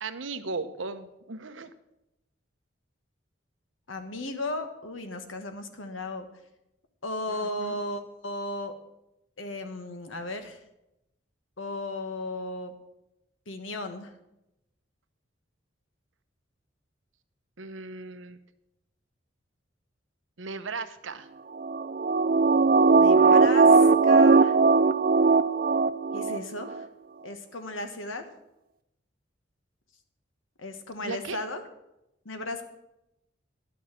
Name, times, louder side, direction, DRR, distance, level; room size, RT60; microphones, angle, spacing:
voice 1, 0.0-1.7 7.3-7.8 17.6-18.4 20.4-21.3 31.0-31.4, right 4 dB, 85° right, 11 dB, 0.8 m, -37 dB
voice 2, 3.9-6.3 7.0-8.7 9.4-10.6 11.6-12.7 13.5-14.1 22.9-24.6 26.1-26.9 27.2-28.3 30.6-31.6 32.2-32.6, left 1 dB, 90° left, 7 dB, 1.4 m, -35 dB
sound 1, 21.6-26.4 26.7-26.8, right 4 dB, 45° right, 0.4 m, -19 dB
11.0 x 6.2 x 7.6 m, 0.89 s
head